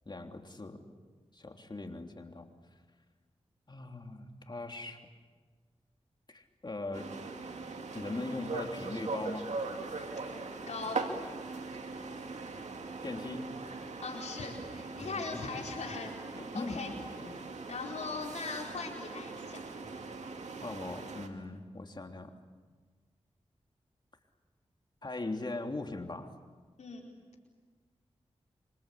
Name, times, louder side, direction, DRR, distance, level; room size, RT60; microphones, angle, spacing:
voice 1, 0.0-0.8 1.3-2.4 3.7-5.0 6.3-7.1 7.9-9.6 13.0-13.6 15.0-15.4 16.3-16.9 17.2-17.5 20.6-22.3 25.0-26.3, left 2 dB, 40° left, 4 dB, 3.4 m, -40 dB
sound 1, 6.9-21.3, right 4 dB, 90° right, 2.4 m, -41 dB
voice 2, 10.7-11.0 14.0-16.2 16.5-16.9 17.7-19.6 26.8-27.1, left 4 dB, 90° left, 0 dB, 4.5 m, -39 dB
27.0 x 25.5 x 8.5 m, 1.5 s
cardioid pair, 55°, 12 cm